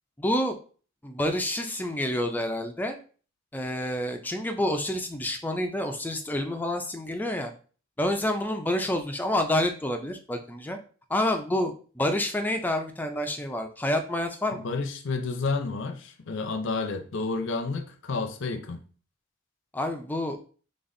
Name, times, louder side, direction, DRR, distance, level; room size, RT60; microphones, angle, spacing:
voice 1, 0.2-0.6 1.0-3.0 3.5-7.5 8.0-10.8 11.1-14.7 19.7-20.4, left 1 dB, 10° left, 5 dB, 0.3 m, -28 dB
voice 2, 14.5-18.8, left 4 dB, 60° left, 7 dB, 0.5 m, -30 dB
4.0 x 3.3 x 2.6 m, 0.40 s
head